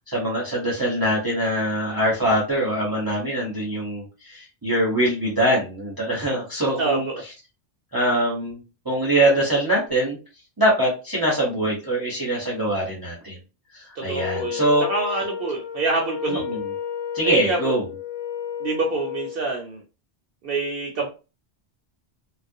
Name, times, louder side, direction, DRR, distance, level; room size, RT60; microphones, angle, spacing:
voice 1, 0.1-7.1 7.9-8.6 8.8-10.2 10.6-13.4 13.7-14.8 16.3-16.6 17.1-17.8, right 1 dB, 25° right, -5 dB, 0.6 m, -23 dB
voice 2, 6.8-7.2 14.0-16.5 17.2-17.8 18.6-19.8 20.4-21.1, right 3 dB, 65° right, 0 dB, 0.7 m, -26 dB
Wind instrument woodwind instrument, 14.1-19.4, left 8 dB, 65° left, 0.8 m, -32 dB
2.3 x 2.1 x 2.6 m, 0.31 s
omnidirectional pair, 1.1 m